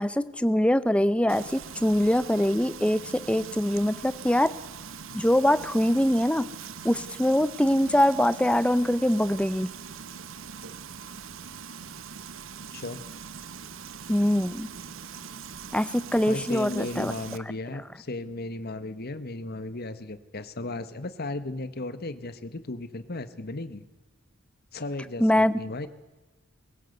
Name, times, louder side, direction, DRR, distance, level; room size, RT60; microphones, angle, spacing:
voice 1, 0.0-4.5 5.1-6.5 6.8-9.7 14.1-14.7 15.7-17.1 25.2-25.5, left 1 dB, 5° left, 15 dB, 0.7 m, -23 dB
Frying (food), 1.3-17.4, right 6 dB, 65° right, 1.0 m, -42 dB
voice 2, 16.2-23.8 24.7-25.9, left 2 dB, 50° left, 12 dB, 1.3 m, -35 dB
23.0 x 16.5 x 8.0 m, 1.1 s
head